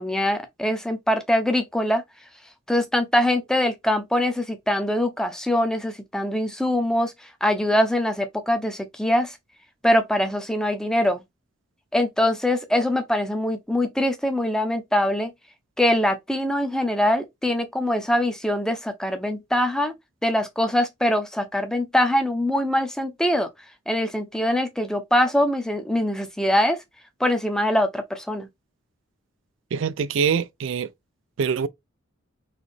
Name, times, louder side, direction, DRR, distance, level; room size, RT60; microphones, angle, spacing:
voice 1, 0.0-2.0 2.7-9.4 9.8-11.2 11.9-15.3 15.8-19.9 20.2-23.5 23.9-26.8 27.2-28.5, left 1 dB, 5° left, 0.6 m, -23 dB
voice 2, 29.7-30.9 31.4-31.7, right 6 dB, 70° right, 0.4 m, -24 dB
4.1 x 2.9 x 3.3 m
head